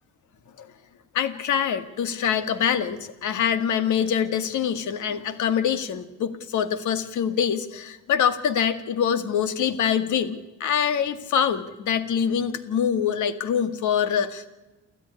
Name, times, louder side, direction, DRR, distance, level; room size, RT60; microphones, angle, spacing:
voice 1, 1.1-14.5, left 8 dB, 75° left, 11 dB, 2.0 m, -25 dB
29.5 x 13.5 x 9.9 m, 1.1 s
cardioid pair, 90°, 30 cm